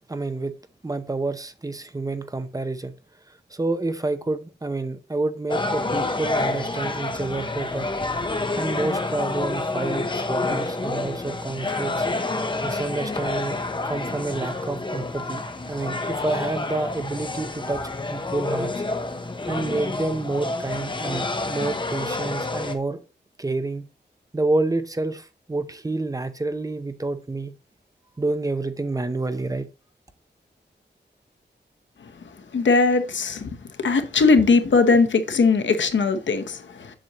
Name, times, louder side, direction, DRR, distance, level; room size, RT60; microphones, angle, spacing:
voice 1, 0.1-0.5 0.8-2.9 3.5-7.9 8.6-12.1 12.6-13.6 13.8-15.4 15.7-17.8 18.1-18.7 19.5-23.0 23.4-23.9 24.3-27.5 28.2-29.7, right 2 dB, 20° right, 0.6 m, -28 dB
sound 1, 5.5-22.7, left 2 dB, 25° left, 0.9 m, -28 dB
voice 2, 32.5-33.5 33.8-36.9, left 4 dB, 90° left, 0.9 m, -19 dB
7.5 x 6.5 x 2.9 m
wide cardioid pair, 130°, 19 cm